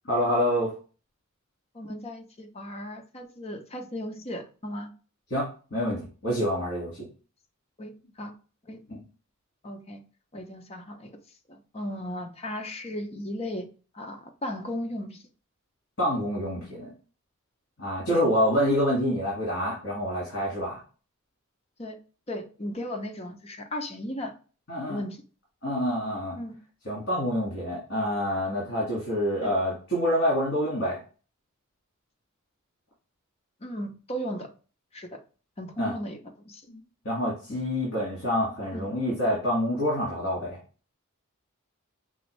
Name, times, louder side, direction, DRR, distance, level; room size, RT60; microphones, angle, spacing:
voice 1, 0.1-0.7 5.3-7.1 8.9-9.0 16.0-16.9 17.8-20.8 24.7-25.0 25.6-26.4 26.9-31.0 35.8-35.9 36.7-36.8 37.1-40.6, equal, 55° left, -5 dB, 1.9 m, -27 dB
voice 2, 1.7-4.9 7.8-8.3 8.7-8.8 9.6-10.0 10.3-11.2 11.5-15.2 18.1-18.2 21.8-22.0 22.3-24.3 24.9-25.2 26.4-26.5 29.4-29.5 33.6-34.5 34.9-35.2 35.6-36.2 36.5-36.6 38.7-38.9, equal, 30° left, 4 dB, 0.7 m, -36 dB
5.5 x 2.6 x 3.1 m, 0.37 s
head